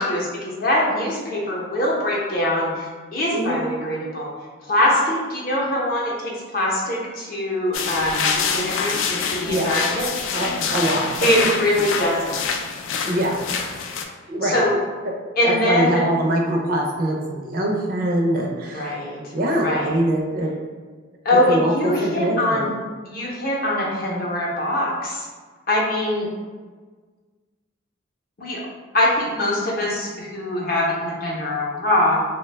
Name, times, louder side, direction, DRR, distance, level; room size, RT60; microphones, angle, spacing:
voice 1, 0.0-4.3 4.7-10.1 11.2-12.6 14.4-14.8 15.4-16.0 18.7-19.2 19.6-20.0 21.2-22.7 23.0-25.3 25.7-26.3 28.4-28.6 28.9-32.2, left 1 dB, 50° left, -4 dB, 0.6 m, -23 dB
sound 1, 7.7-14.0, left 6 dB, 80° left, 0.3 m, -26 dB
voice 2, 10.3-11.3 13.0-13.4 14.3-14.6 15.4-19.0 19.3-20.5 21.3-22.7, right 1 dB, 45° right, 0 dB, 0.4 m, -23 dB
2.6 x 2.1 x 3.2 m, 1.4 s
head